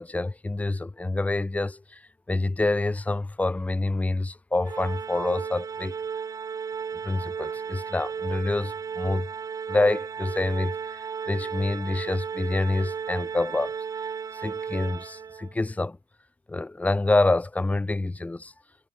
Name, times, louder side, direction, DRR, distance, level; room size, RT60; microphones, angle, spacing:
voice 1, 0.0-2.0 2.3-5.9 7.0-9.3 9.7-13.8 14.3-16.0 16.5-18.5, left 2 dB, 10° left, 1.2 m, -27 dB
Organ, 4.7-15.5, right 6 dB, 20° right, 0.5 m, -34 dB
cardioid pair, 155°, 16 cm